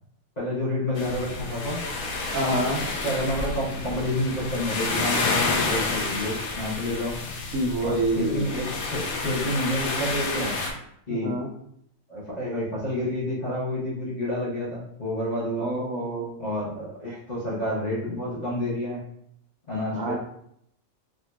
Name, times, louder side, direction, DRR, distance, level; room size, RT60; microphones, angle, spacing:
voice 1, 0.4-1.8 2.4-2.6 3.0-7.2 7.8-10.6 11.1-11.4 12.1-15.7 16.4-19.0 19.7-20.2, left 1 dB, 35° left, -7 dB, 0.9 m, -29 dB
sound 1, 1.0-10.7, left 3 dB, 85° left, 1.0 m, -29 dB
voice 2, 2.3-2.8 7.5-8.5 11.1-11.5 15.6-16.3 19.9-20.2, right 1 dB, 75° right, 0 dB, 1.1 m, -27 dB
3.6 x 2.7 x 2.2 m, 0.72 s
omnidirectional pair, 1.5 m